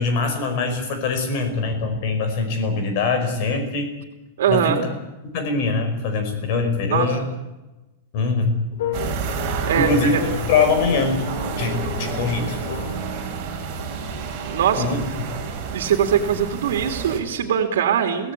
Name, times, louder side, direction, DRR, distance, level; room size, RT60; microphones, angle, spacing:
voice 1, 0.0-3.9 4.5-4.8 5.2-7.2 8.1-8.6 9.7-11.2 11.6-12.6 14.8-15.3, left 4 dB, 40° left, 6 dB, 5.0 m, -23 dB
voice 2, 4.4-4.9 6.9-7.3 9.7-10.2 14.4-14.9 15.7-18.3, right 8 dB, 85° right, 5 dB, 2.7 m, -21 dB
sound 1, 8.7-14.6, left 6 dB, 75° left, 3.7 m, -34 dB
sound 2, 8.9-17.2, right 5 dB, 30° right, 5.1 m, -29 dB
24.0 x 17.5 x 8.5 m, 1.1 s
supercardioid pair, 175°, 0 cm